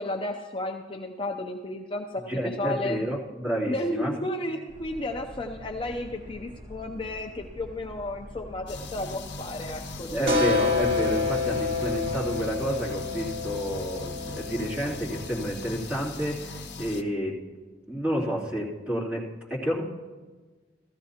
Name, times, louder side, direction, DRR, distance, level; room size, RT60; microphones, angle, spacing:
voice 1, 0.0-3.1 3.7-10.6, left 1 dB, 30° left, 2 dB, 0.5 m, -33 dB
voice 2, 2.3-4.1 10.1-17.4 17.9-19.2 19.5-19.8, equal, 10° right, -7 dB, 2.8 m, -30 dB
Boat Water vehicle, 4.7-12.2, left 1 dB, 45° right, 2.5 m, -45 dB
sound 1, 8.7-17.0, left 2 dB, 65° left, 0.9 m, -39 dB
sound 2, 10.3-15.7, left 4 dB, 60° right, 2.2 m, -29 dB
16.0 x 14.0 x 2.8 m, 1.4 s
head